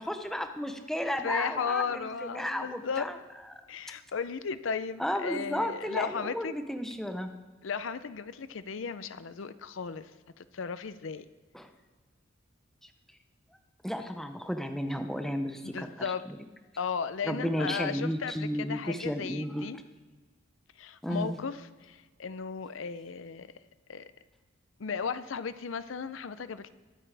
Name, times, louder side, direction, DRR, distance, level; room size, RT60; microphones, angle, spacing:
voice 1, 0.0-3.2 3.5-3.6 5.0-7.3 11.5-11.7 12.8-12.9 13.8-16.4 17.2-19.7 21.0-21.4, equal, ahead, 6 dB, 0.7 m, -33 dB
voice 2, 1.2-3.1 3.7-6.5 7.6-10.1 10.4-11.3 15.6-16.2 16.8-19.8 20.8-21.6 21.8-23.5 23.9-24.0 24.8-26.7, left 6 dB, 70° left, 14 dB, 0.5 m, -35 dB
22.5 x 8.6 x 3.4 m, 1.3 s
head